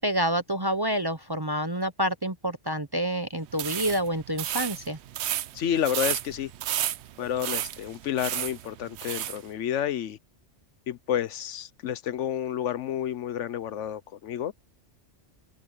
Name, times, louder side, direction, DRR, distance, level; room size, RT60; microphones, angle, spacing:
voice 1, 0.0-5.0, equal, 25° right, 0.6 m, -28 dB
Sand picking shovel, 3.5-9.4, right 12 dB, 65° right, 0.8 m, -32 dB
voice 2, 5.5-6.5 7.2-10.2 10.9-14.5, left 10 dB, 75° left, 1.0 m, -30 dB
omnidirectional pair, 1.3 m